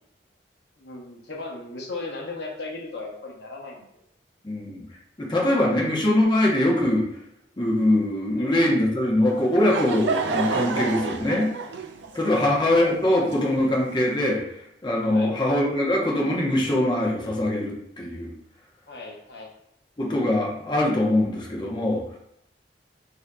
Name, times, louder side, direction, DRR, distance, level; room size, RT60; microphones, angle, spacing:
voice 1, 0.8-4.0 8.3-8.5 12.2-12.5 15.1-15.4 18.9-19.5, left 3 dB, 65° left, -1 dB, 0.8 m, -37 dB
voice 2, 4.4-4.8 5.2-7.0 7.6-11.5 12.1-18.3 20.0-22.0, left 1 dB, 25° left, -3 dB, 0.8 m, -22 dB
Laughter / Crowd, 9.3-14.0, right 4 dB, 85° right, 0.5 m, -30 dB
7.5 x 2.7 x 2.2 m, 0.77 s
head